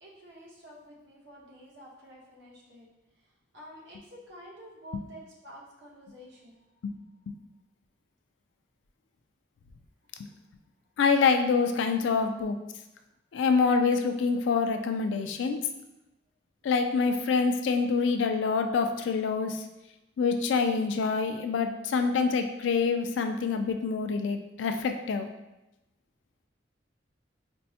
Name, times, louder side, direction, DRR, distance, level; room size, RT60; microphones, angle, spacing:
voice 1, 0.0-2.9 3.5-6.6 10.2-10.3, equal, 70° right, -5 dB, 1.0 m, -49 dB
voice 2, 11.0-12.6 13.3-15.6 16.6-19.6 20.2-25.3, left 5 dB, 85° left, 6 dB, 0.3 m, -26 dB
4.3 x 2.1 x 2.7 m, 0.97 s
head